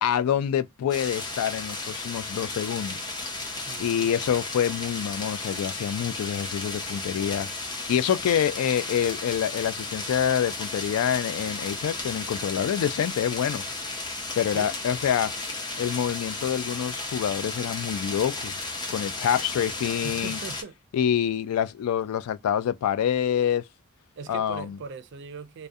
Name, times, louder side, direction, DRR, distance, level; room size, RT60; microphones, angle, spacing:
voice 1, 0.0-3.0 3.8-7.5 7.9-13.6 14.4-15.3 15.8-18.5 18.9-20.4 20.9-23.7 24.3-24.8, left 9 dB, 85° left, 0.3 m, -26 dB
sound 1, 0.9-20.6, left 3 dB, 20° left, 0.5 m, -34 dB
voice 2, 3.7-4.1 14.5-14.8 20.0-20.8 24.2-25.7, right 5 dB, 55° right, 0.4 m, -40 dB
2.3 x 2.1 x 2.5 m
head